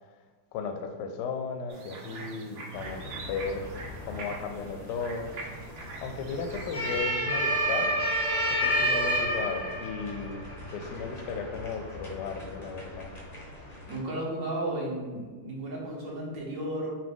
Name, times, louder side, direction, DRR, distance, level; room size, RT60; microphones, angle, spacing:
voice 1, 0.5-3.7 4.0-5.3 6.0-8.0 8.5-10.4 10.7-13.1, left 5 dB, 75° left, 6 dB, 1.1 m, -35 dB
sound 1, 1.7-7.0, right 3 dB, 85° right, 0.6 m, -43 dB
sound 2, 2.7-14.0, equal, 35° left, 0.6 m, -32 dB
voice 2, 13.9-16.9, right 1 dB, 50° right, -4 dB, 1.2 m, -33 dB
5.4 x 2.5 x 3.5 m, 1.4 s
omnidirectional pair, 2.1 m